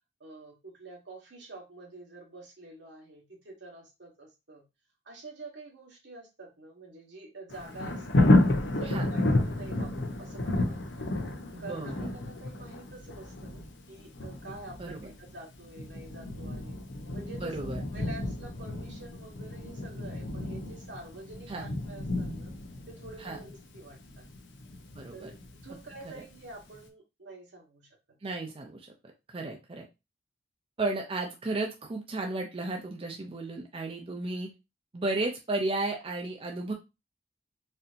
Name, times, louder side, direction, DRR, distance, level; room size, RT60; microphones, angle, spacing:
voice 1, 0.2-4.6 5.0-8.3 8.6-11.1 11.6-16.8 17.1-22.5 22.9-24.2 25.1-27.9, right 2 dB, 80° right, 0 dB, 1.4 m, -47 dB
Thunder, 7.5-26.3 26.7-26.8, left 1 dB, 90° left, 0.7 m, -31 dB
voice 2, 11.5-12.1 14.8-15.1 17.4-17.8 21.5-21.6 23.2-23.4 25.0-25.3 28.2-28.9 29.3-29.8 30.8-34.5 34.9-36.7, right 2 dB, 30° right, 2 dB, 0.5 m, -33 dB
4.2 x 2.7 x 2.6 m, 0.25 s
head